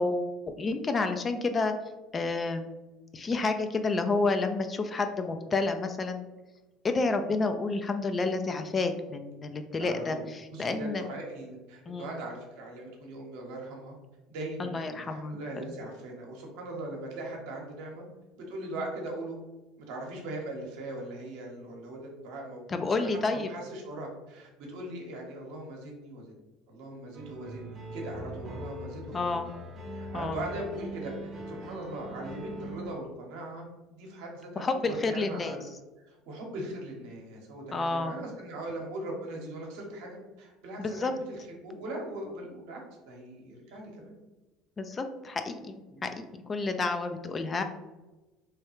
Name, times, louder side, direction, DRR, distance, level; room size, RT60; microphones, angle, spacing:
voice 1, 0.0-1.7 2.1-2.7 3.1-6.2 6.8-11.0 11.9-12.2 14.6-15.4 22.7-23.5 29.1-29.5 30.1-30.4 34.6-35.6 37.7-38.2 40.8-41.1 44.8-45.7 46.0-47.6, left 3 dB, 30° left, 7 dB, 0.3 m, -30 dB
voice 2, 9.8-10.2 10.5-13.9 14.3-18.0 18.4-19.4 19.8-26.3 26.7-29.4 29.9-35.6 36.0-44.1 45.9-46.1, right 1 dB, 75° right, -1 dB, 0.9 m, -40 dB
sound 1, 27.1-32.9, right 1 dB, 40° right, 0.6 m, -41 dB
3.1 x 2.3 x 3.0 m, 1.1 s
hypercardioid pair, 80°, 0 cm